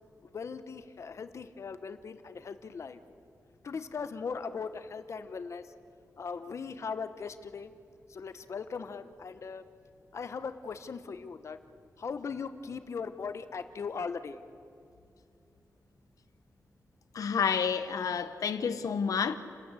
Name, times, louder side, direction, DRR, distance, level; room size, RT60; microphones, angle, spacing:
voice 1, 0.2-3.0 3.6-5.7 6.2-7.7 8.1-9.6 10.1-11.6 12.0-14.4, left 5 dB, 55° left, 1.0 m, -39 dB
voice 2, 17.1-19.4, left 6 dB, 85° left, 1.1 m, -29 dB
29.5 x 13.0 x 8.3 m
wide cardioid pair, 140°, 6 cm